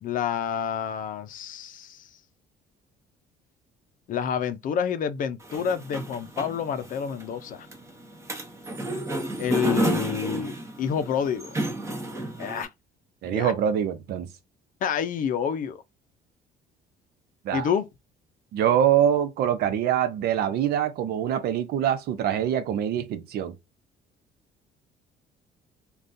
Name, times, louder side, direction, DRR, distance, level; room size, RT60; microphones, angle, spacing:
voice 1, 0.0-2.1 4.1-7.7 9.4-11.5 12.4-12.7 13.2-13.5 14.8-15.8 17.5-17.9, left 8 dB, 55° left, 0.5 m, -28 dB
sound 1, 5.4-12.7, right 1 dB, 15° right, 0.9 m, -31 dB
voice 2, 13.2-14.3 17.4-17.7 18.5-23.5, right 9 dB, 70° right, 0.6 m, -24 dB
3.6 x 2.3 x 2.6 m
cardioid pair, 110°, 17 cm